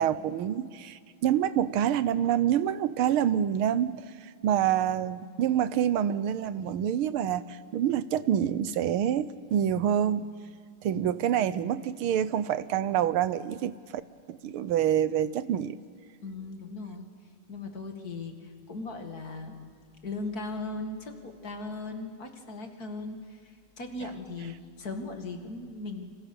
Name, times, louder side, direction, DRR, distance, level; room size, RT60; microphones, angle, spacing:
voice 1, 0.0-10.3 10.8-13.8 14.3-15.8, right 10 dB, 85° right, 14 dB, 1.7 m, -27 dB
voice 2, 16.2-17.1 17.5-19.7 20.0-26.2, left 3 dB, 45° left, 4 dB, 2.5 m, -38 dB
29.5 x 27.0 x 7.0 m, 2.2 s
omnidirectional pair, 2.3 m